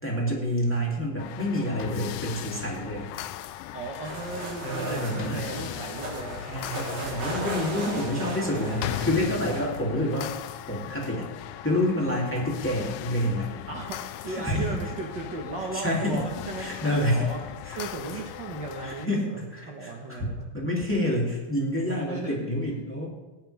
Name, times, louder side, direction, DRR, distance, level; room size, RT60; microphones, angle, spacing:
voice 1, 0.0-3.1 4.6-5.4 6.5-10.3 10.7-11.3 11.6-13.5 14.3-14.7 15.7-16.2 16.6-17.3 17.6-17.8 18.8-20.2 20.5-23.1, left 1 dB, 5° left, -3 dB, 2.2 m, -28 dB
sound 1, 1.2-19.1, left 13 dB, 85° left, 2.0 m, -38 dB
voice 2, 3.7-6.4 13.7-17.4 17.8-19.4 19.6-20.5 22.1-22.5, right 3 dB, 50° right, 0 dB, 1.4 m, -36 dB
sound 2, 4.0-9.8, right 1 dB, 65° right, 5.0 m, -36 dB
19.5 x 10.0 x 3.5 m, 1.2 s
omnidirectional pair, 3.6 m